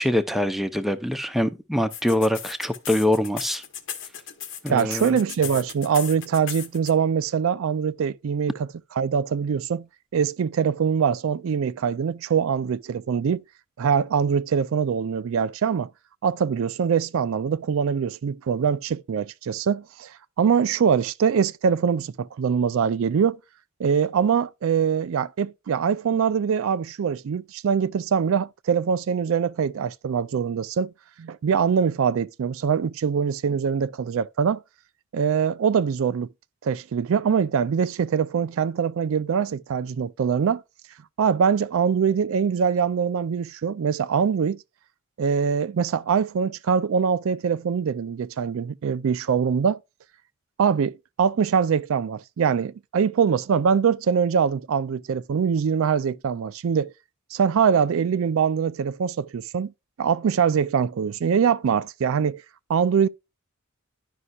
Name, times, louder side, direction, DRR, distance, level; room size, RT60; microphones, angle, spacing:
voice 1, 0.0-3.6 4.6-5.2, left 1 dB, ahead, 0.7 m, -24 dB
sound 1, 1.9-6.9, left 9 dB, 65° left, 1.2 m, -36 dB
voice 2, 4.7-8.7 9.0-9.9 10.1-13.4 13.8-15.9 16.2-23.4 23.8-30.9 31.2-34.6 35.1-36.3 36.6-40.6 41.2-44.6 45.2-49.8 50.6-56.9 57.3-59.7 60.0-62.4 62.7-63.1, right 7 dB, 70° right, 0.4 m, -23 dB
11.0 x 5.5 x 2.4 m
head